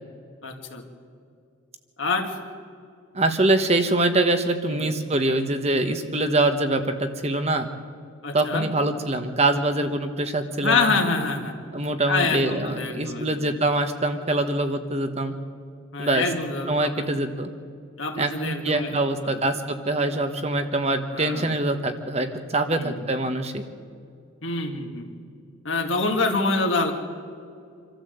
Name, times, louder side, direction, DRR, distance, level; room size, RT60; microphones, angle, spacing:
voice 1, 0.4-0.8 2.0-2.3 4.7-4.9 8.2-8.7 10.6-11.5 12.1-13.5 15.9-17.2 18.0-18.9 19.2-19.4 21.1-21.5 22.7-23.0 24.4-25.1 25.6-26.9, left 3 dB, 70° left, 2 dB, 2.5 m, -26 dB
voice 2, 3.1-7.7 8.3-10.9 11.7-15.3 16.0-16.2 16.7-17.5 18.2-23.6, right 2 dB, 30° right, 7 dB, 1.2 m, -24 dB
26.5 x 13.0 x 8.0 m, 2.4 s
head